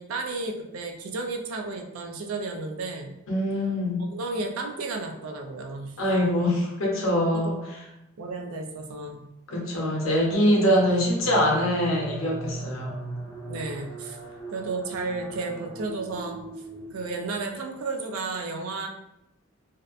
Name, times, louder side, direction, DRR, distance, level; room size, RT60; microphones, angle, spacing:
voice 1, 0.0-3.2 4.0-6.0 7.3-7.6 8.2-9.3 13.5-14.2 14.5-16.4 16.9-18.9, right 3 dB, 80° right, 2 dB, 0.4 m, -33 dB
voice 2, 3.3-4.1 6.0-7.6 9.5-13.0, equal, 70° left, -2 dB, 0.7 m, -23 dB
sound 1, 10.6-17.5, right 2 dB, 5° right, 0.6 m, -39 dB
2.7 x 2.1 x 2.4 m, 0.87 s
head